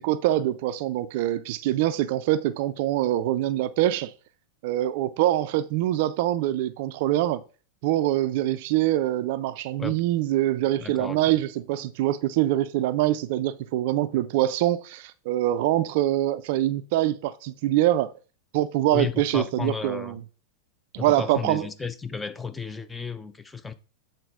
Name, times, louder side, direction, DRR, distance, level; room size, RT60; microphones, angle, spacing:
voice 1, 0.0-4.1 4.6-7.4 7.8-18.1 18.5-20.2 20.9-21.7, right 14 dB, 50° right, 0.4 m, -24 dB
voice 2, 10.8-11.2 18.9-20.2 21.0-23.7, left 5 dB, 10° left, 0.6 m, -33 dB
7.9 x 4.3 x 4.9 m
figure-of-eight pair, 90°, 0 cm